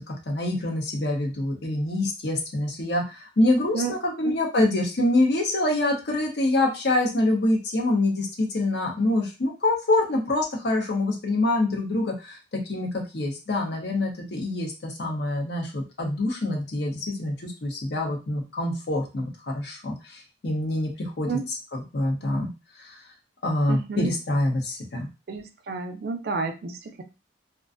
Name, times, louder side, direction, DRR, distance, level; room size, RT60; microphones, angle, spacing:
voice 1, 0.1-12.4 12.7-22.5 22.8-23.0 23.4-25.1, left 2 dB, 55° left, 1 dB, 0.7 m, -25 dB
voice 2, 23.7-24.1 25.3-27.0, right 4 dB, 50° right, 7 dB, 0.4 m, -30 dB
2.4 x 2.1 x 2.4 m, 0.29 s
head